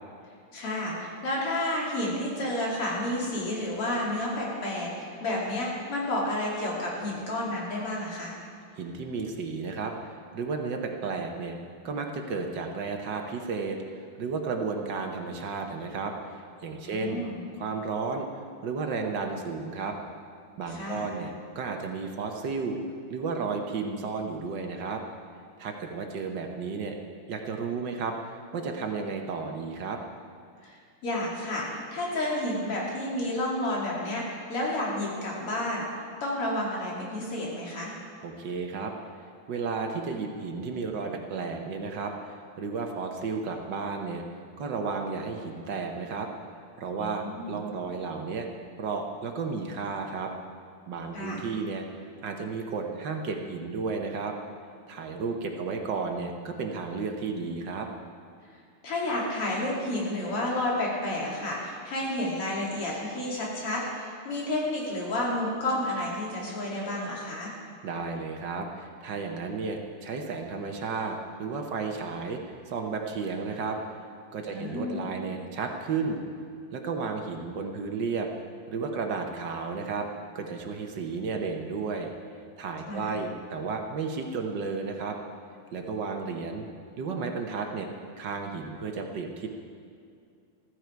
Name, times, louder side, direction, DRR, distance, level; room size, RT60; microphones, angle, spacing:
voice 1, 0.5-8.3 16.8-17.5 20.7-21.2 30.6-37.9 47.0-47.6 51.1-51.5 58.8-67.5 74.5-75.2 82.9-83.2, left 1 dB, 85° left, -4 dB, 3.9 m, -31 dB
voice 2, 8.8-11.6 11.8-17.2 17.5-18.3 18.6-20.0 20.6-22.8 23.1-25.0 25.6-26.9 27.3-28.2 28.5-30.0 38.2-38.9 39.5-44.2 44.6-46.3 46.8-48.5 48.8-50.3 50.9-51.8 52.2-54.3 54.9-57.9 67.8-73.8 74.3-76.2 76.7-78.3 78.7-80.1 80.3-82.1 82.6-85.2 85.7-86.7 87.0-87.9 88.2-89.5, right 4 dB, 60° right, 3 dB, 1.5 m, -33 dB
15.0 x 14.5 x 4.6 m, 2.4 s
omnidirectional pair, 2.4 m